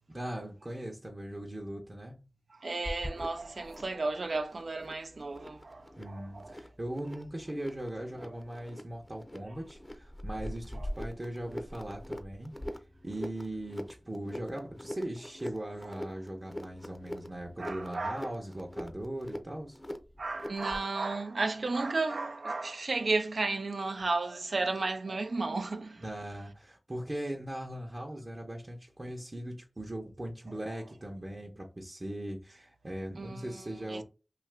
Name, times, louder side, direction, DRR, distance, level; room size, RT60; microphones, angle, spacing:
voice 1, 0.1-2.2 6.0-12.5 13.0-19.8 26.0-34.0, right 1 dB, 40° right, 0.6 m, -39 dB
voice 2, 2.5-6.6 10.7-10.9 15.8-16.0 17.6-18.3 20.2-26.0 30.7-30.8 33.2-34.0, right 3 dB, 85° right, 0.3 m, -33 dB
sound 1, 2.8-20.9, left 1 dB, 20° left, 0.5 m, -43 dB
2.7 x 2.4 x 3.2 m
wide cardioid pair, 50°, 0 cm